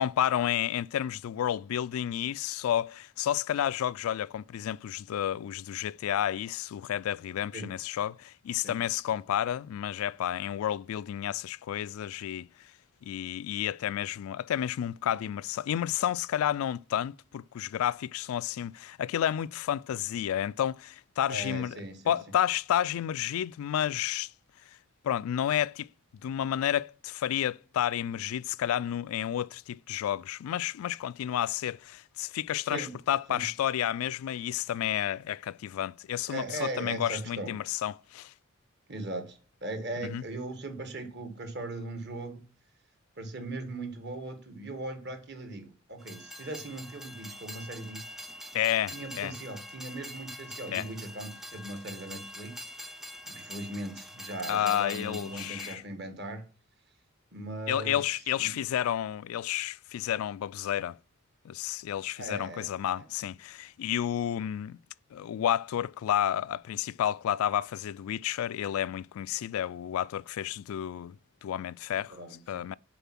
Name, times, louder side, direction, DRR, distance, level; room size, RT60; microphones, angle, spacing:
voice 1, 0.0-12.5 13.0-21.8 22.1-24.3 25.0-25.9 26.2-38.3 40.1-40.2 48.5-49.3 50.7-50.8 54.5-55.8 57.7-61.0 61.4-64.8 65.1-71.2 71.4-72.2 72.5-72.8, left 10 dB, 90° left, 0.3 m, -31 dB
voice 2, 21.3-22.2 32.6-32.9 33.3-33.4 36.3-37.5 38.9-42.4 43.2-48.1 48.9-52.7 53.2-56.4 57.3-58.0 58.4-58.5 62.2-62.7 63.0-63.1 72.1-72.6, right 2 dB, 50° right, 1.6 m, -39 dB
Train, 46.0-55.8, equal, ahead, 0.4 m, -44 dB
6.9 x 4.5 x 5.8 m
head